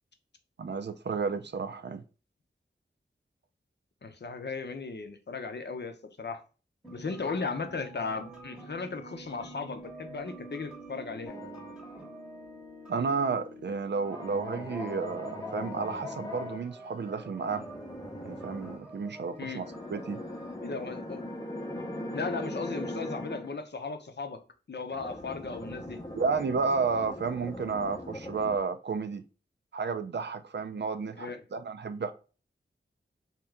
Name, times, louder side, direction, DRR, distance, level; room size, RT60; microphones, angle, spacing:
voice 1, 0.6-2.0 12.9-17.6 18.2-19.7 19.9-20.2 26.1-29.2 29.7-32.1, right 5 dB, 60° right, 0.4 m, -32 dB
voice 2, 4.0-6.4 6.9-11.4 19.4-19.6 20.6-21.2 22.1-24.4 24.7-26.0 31.2-31.4, left 4 dB, 60° left, 0.6 m, -36 dB
sound 1, 6.8-20.6, right 2 dB, 5° right, 1.0 m, -48 dB
sound 2, 11.3-12.2 14.0-16.6 17.5-18.8 19.5-23.5 24.9-28.6, left 1 dB, 20° left, 0.6 m, -40 dB
3.2 x 2.9 x 3.4 m
wide cardioid pair, 80°, 20 cm